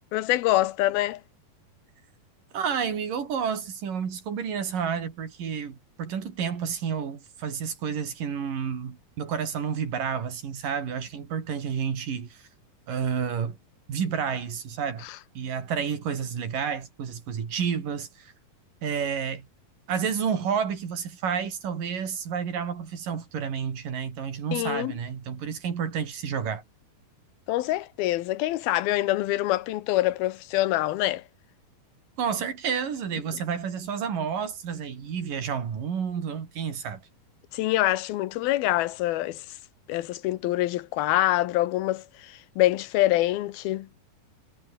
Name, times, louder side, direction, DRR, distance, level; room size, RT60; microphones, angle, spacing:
voice 1, 0.1-1.2 15.0-15.2 24.5-24.9 27.5-31.2 33.3-33.4 37.5-39.6 39.9-43.9, left 16 dB, 85° left, 2.9 m, -25 dB
voice 2, 2.5-12.4 12.9-13.6 13.9-15.1 15.3-18.3 18.8-19.5 19.9-26.6 32.2-37.0, right 7 dB, 65° right, 4.8 m, -30 dB
omnidirectional pair, 4.2 m